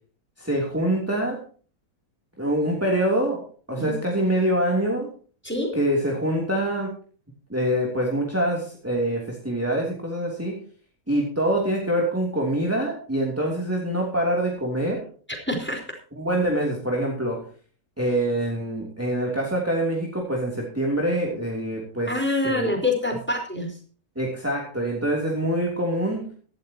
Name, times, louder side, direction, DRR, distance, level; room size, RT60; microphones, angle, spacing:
voice 1, 0.4-1.4 2.4-5.1 5.7-6.9 7.5-10.6 11.1-15.1 16.1-17.5 18.0-22.1 22.4-22.7 24.1-26.3, right 1 dB, 10° right, -2 dB, 3.3 m, -25 dB
voice 2, 5.4-5.8 15.5-15.8 22.1-23.8, left 2 dB, 5° left, 3 dB, 4.6 m, -25 dB
17.5 x 13.5 x 3.0 m, 0.41 s
omnidirectional pair, 1.6 m